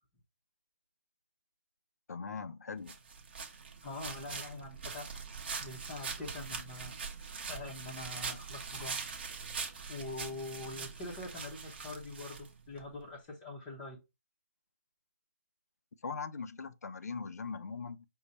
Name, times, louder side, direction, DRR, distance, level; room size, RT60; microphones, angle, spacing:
voice 1, 2.1-3.0 16.0-18.1, left 5 dB, 70° left, 0.5 m, -40 dB
sound 1, 2.9-12.9, right 5 dB, 35° right, 0.7 m, -42 dB
voice 2, 3.8-5.3 5.6-7.1 7.5-9.2 9.9-14.0, left 2 dB, 15° left, 0.6 m, -44 dB
5.3 x 2.1 x 4.0 m
hypercardioid pair, 165°, 9 cm